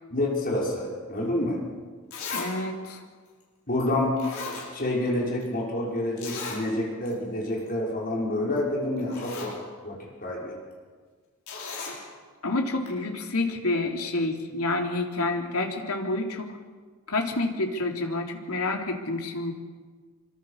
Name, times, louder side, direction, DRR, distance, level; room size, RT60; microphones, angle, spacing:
voice 1, 0.1-1.6 3.7-4.3 4.7-9.6 9.8-10.6, left 1 dB, 40° left, -3 dB, 5.9 m, -28 dB
Zipper (clothing), 1.6-1.7 2.1-2.5 2.9-3.0 3.8-3.9 4.2-5.1 5.4-5.5 6.2-6.6 7.1-7.2 7.5-7.7 8.6-8.7 9.0-9.5 11.5-12.0 12.9-13.0, left 4 dB, 65° left, 7.1 m, -36 dB
voice 2, 2.3-3.0 12.4-16.5 17.1-19.5, left 2 dB, 85° left, 2 dB, 3.8 m, -28 dB
26.0 x 25.0 x 6.8 m, 1.5 s
head